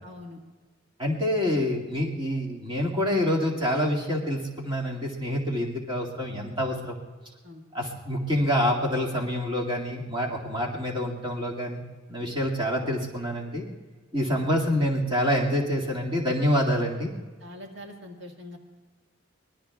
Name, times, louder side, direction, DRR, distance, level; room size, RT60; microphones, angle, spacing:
voice 1, 0.0-0.4 7.4-7.6 17.4-18.6, left 1 dB, 60° right, 1 dB, 1.8 m, -43 dB
voice 2, 1.0-7.0 7.7-11.8 12.1-13.7 14.1-17.1, equal, 25° right, -3 dB, 2.2 m, -27 dB
25.0 x 20.5 x 2.4 m, 1.4 s
head